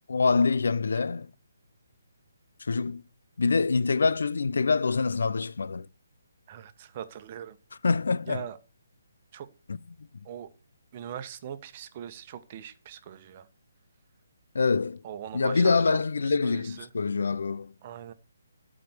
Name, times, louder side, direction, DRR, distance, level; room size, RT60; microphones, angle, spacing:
voice 1, 0.1-1.3 2.6-3.0 3.4-5.9 7.8-8.5 9.7-10.1 14.5-15.0 15.3-17.7, left 4 dB, 75° left, 0.7 m, -25 dB
voice 2, 6.5-7.6 8.3-8.6 9.3-9.5 10.2-10.5 10.9-13.5 15.0-16.9 17.8-18.1, right 9 dB, 35° right, 1.3 m, -41 dB
12.0 x 5.2 x 8.1 m
hypercardioid pair, 150°, 0 cm